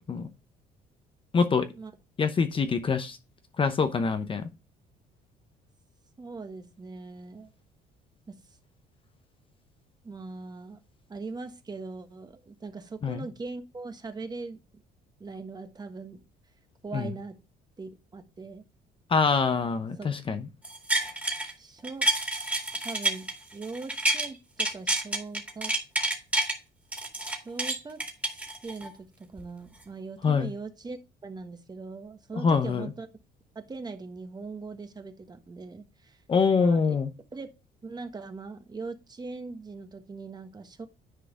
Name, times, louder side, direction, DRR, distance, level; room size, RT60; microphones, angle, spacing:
voice 1, 1.3-1.7 2.2-3.2 3.6-4.5 13.0-13.2 16.9-17.1 19.1-20.5 30.2-30.5 32.4-32.9 36.3-37.1, left 5 dB, 30° left, 0.8 m, -25 dB
voice 2, 6.2-7.5 8.3-8.4 10.0-10.8 11.1-14.6 15.2-16.2 16.8-17.3 17.8-18.6 20.0-20.1 21.6-22.1 22.8-25.7 27.3-28.0 28.3-33.1 33.5-36.2 36.5-37.0 37.3-37.5 37.8-40.9, right 3 dB, 25° right, 1.3 m, -40 dB
sound 1, 20.6-21.5 21.8-24.3 24.6-26.6 26.9-28.9 29.4-29.5, right 1 dB, 10° right, 2.3 m, -29 dB
10.0 x 4.8 x 3.7 m
cardioid pair, 110°, 17 cm